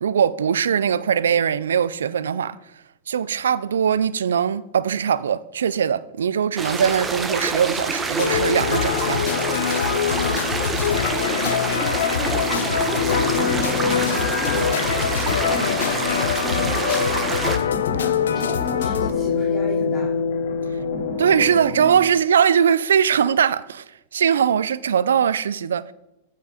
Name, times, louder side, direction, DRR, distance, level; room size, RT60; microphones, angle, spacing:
voice 1, 0.0-2.6 3.1-9.2 21.2-23.8 24.1-25.9, right 8 dB, 85° right, 0.5 m, -21 dB
sound 1, 6.6-17.6, right 4 dB, 15° right, 1.3 m, -27 dB
sound 2, 8.2-19.1, left 7 dB, 85° left, 0.6 m, -23 dB
voice 2, 11.1-14.9 15.4-20.2 20.6-20.7, left 1 dB, 25° left, 3.7 m, -34 dB
sound 3, 12.5-22.0, left 5 dB, 65° left, 2.6 m, -28 dB
15.0 x 5.7 x 5.1 m
hypercardioid pair, 115°, 0 cm